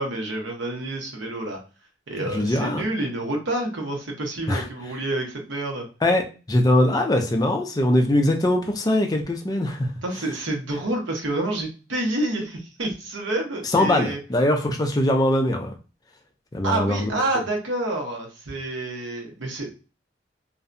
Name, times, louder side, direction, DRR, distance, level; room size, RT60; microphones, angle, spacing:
voice 1, 0.0-1.6 2.1-5.9 10.0-14.2 16.6-19.7, right 2 dB, 85° right, 2 dB, 0.8 m, -28 dB
voice 2, 2.2-2.9 4.5-4.7 6.0-6.2 6.5-9.9 13.6-15.7 16.5-17.2, left 1 dB, 20° left, 4 dB, 0.4 m, -21 dB
2.6 x 2.2 x 2.5 m, 0.34 s
head